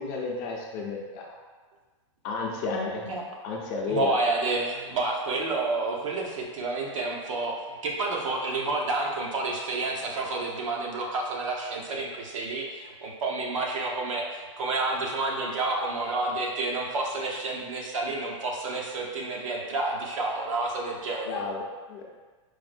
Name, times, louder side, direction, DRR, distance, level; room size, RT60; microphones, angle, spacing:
voice 1, 0.0-1.4 2.2-3.0 3.4-4.1 21.3-22.0, left 3 dB, 35° left, -1 dB, 0.5 m, -32 dB
voice 2, 3.9-21.4, right 2 dB, 85° right, -1 dB, 0.8 m, -29 dB
4.6 x 2.0 x 2.5 m, 1.3 s
hypercardioid pair, 145°, 16 cm